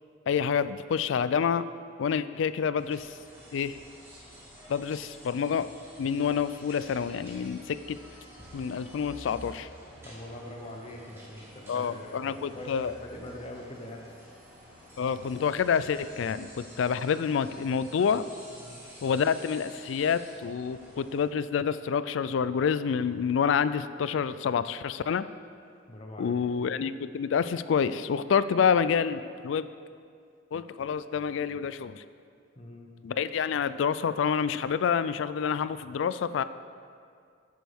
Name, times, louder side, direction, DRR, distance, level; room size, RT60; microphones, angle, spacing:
voice 1, 0.3-1.6 2.0-3.1 3.5-3.8 4.7-5.7 6.0-8.0 8.5-9.7 11.7-12.9 15.0-18.2 19.0-25.2 26.2-29.7 30.5-32.0 33.0-36.4, left 7 dB, 70° left, 14 dB, 0.3 m, -28 dB
sound 1, 2.7-21.2, equal, 15° right, 2.0 m, -50 dB
voice 2, 10.0-14.0 18.5-18.8 25.9-26.3 32.5-32.9, left 1 dB, 30° left, 1 dB, 1.1 m, -43 dB
10.5 x 9.2 x 3.5 m, 2.2 s
head